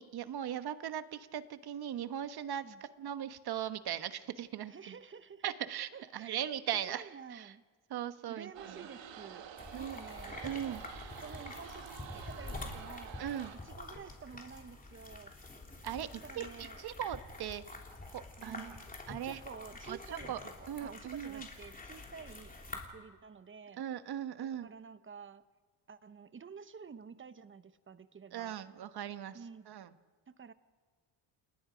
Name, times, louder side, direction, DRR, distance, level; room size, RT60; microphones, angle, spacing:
voice 1, 0.0-4.9 5.4-7.5 7.9-8.7 9.7-10.0 10.4-10.8 13.2-13.5 15.8-17.8 18.1-18.7 19.1-19.4 19.9-20.4 20.7-21.5 23.8-24.7 28.3-29.4 29.7-29.9, right 10 dB, 55° right, 11 dB, 1.2 m, -39 dB
voice 2, 4.6-5.4 5.9-6.4 6.7-7.6 8.3-9.5 9.7-13.2 13.5-15.6 16.2-16.8 18.4-23.8 24.4-25.4 25.9-28.6 29.3-29.7 30.3-30.5, right 6 dB, 25° right, 13 dB, 0.9 m, -51 dB
sound 1, 8.5-13.6, right 8 dB, 70° right, 2.1 m, -48 dB
sound 2, 9.6-22.9, left 2 dB, 20° left, 3.1 m, -47 dB
29.5 x 20.0 x 5.1 m, 1.5 s
cardioid pair, 105°, 47 cm